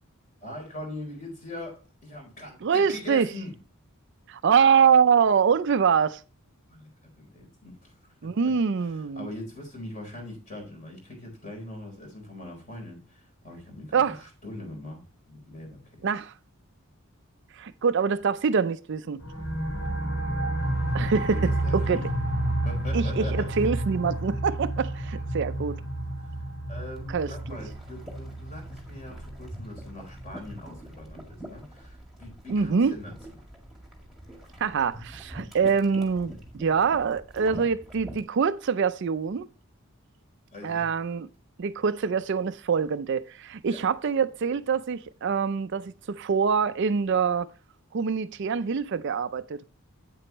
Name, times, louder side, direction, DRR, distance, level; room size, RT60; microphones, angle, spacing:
voice 1, 0.4-3.5 6.7-8.5 8.8-16.0 21.2-22.3 22.6-23.6 26.2-26.3 26.7-33.1 40.5-40.9 43.7-43.9, left 1 dB, 35° left, 3.8 m, -41 dB
voice 2, 2.6-3.3 4.3-6.2 8.2-9.3 13.9-14.2 16.0-16.3 17.6-19.2 20.9-21.4 21.7-22.0 22.9-25.8 27.1-27.3 32.5-32.9 34.6-39.5 40.6-41.3 41.6-47.5 47.9-49.6, right 6 dB, 55° right, 0.4 m, -24 dB
sound 1, 19.2-30.5, right 1 dB, 85° left, 5.0 m, -30 dB
sound 2, 26.9-38.2, right 1 dB, ahead, 2.0 m, -45 dB
8.6 x 7.7 x 3.0 m
head